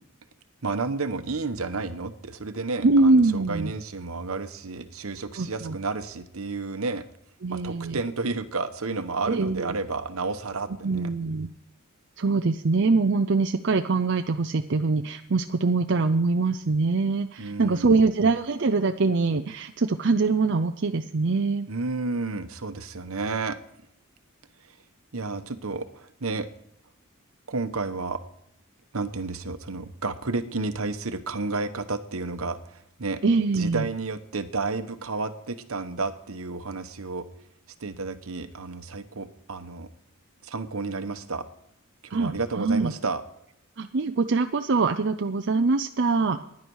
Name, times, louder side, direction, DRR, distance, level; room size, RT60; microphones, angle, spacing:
voice 1, 0.6-7.0 7.5-11.1 17.4-17.9 21.7-23.6 25.1-26.5 27.5-28.2 28.9-33.2 33.6-37.3 37.8-39.9 40.4-41.4 42.0-43.2, right 3 dB, 75° right, 9 dB, 1.1 m, -31 dB
voice 2, 2.8-3.7 5.4-5.8 7.4-8.0 9.3-9.7 10.8-11.5 12.2-21.7 33.2-33.9 42.1-42.9 43.8-46.4, right 3 dB, 55° right, 6 dB, 0.6 m, -23 dB
15.5 x 10.5 x 4.7 m, 0.77 s
head